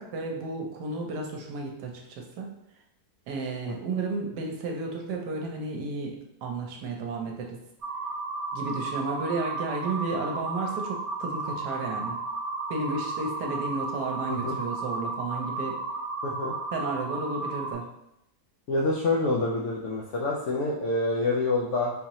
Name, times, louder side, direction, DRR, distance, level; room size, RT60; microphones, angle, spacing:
voice 1, 0.0-2.5 3.3-6.2 6.4-7.6 8.5-12.2 12.7-15.8 16.7-17.8, right 3 dB, 75° right, 1 dB, 1.3 m, -32 dB
sound 1, 7.8-17.7, right 3 dB, 60° right, 1.5 m, -33 dB
voice 2, 16.2-16.5 18.7-21.9, left 2 dB, 75° left, -3 dB, 0.7 m, -27 dB
3.9 x 2.8 x 3.0 m, 0.80 s
omnidirectional pair, 1.8 m